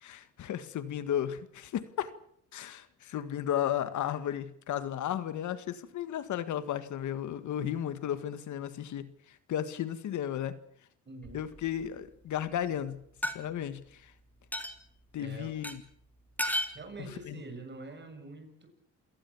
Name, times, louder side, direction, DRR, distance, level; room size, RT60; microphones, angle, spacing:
voice 1, 0.0-2.1 2.5-10.6 11.3-13.0 13.3-14.1 15.1-15.8 17.0-17.4, left 10 dB, 75° left, 12 dB, 1.8 m, -34 dB
voice 2, 11.1-11.5 15.2-15.6 16.7-18.7, right 3 dB, 35° right, 6 dB, 7.2 m, -45 dB
sound 1, 11.2-11.9 13.2-13.3 14.5-14.8 15.6-15.7 16.4-16.8, left 1 dB, 5° left, 3.4 m, -33 dB
28.0 x 18.0 x 7.3 m, 0.68 s
cardioid pair, 90°, 30 cm